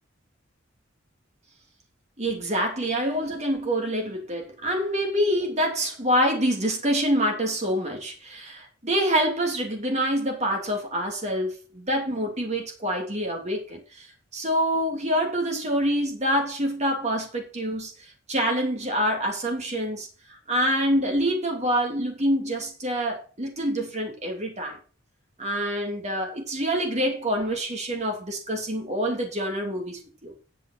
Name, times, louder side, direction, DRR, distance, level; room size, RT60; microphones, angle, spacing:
voice 1, 2.2-14.1 14.3-17.9 18.3-20.1 20.5-24.8 25.4-30.3, equal, 35° right, 2.9 m, -26 dB
8.7 x 6.1 x 5.8 m
head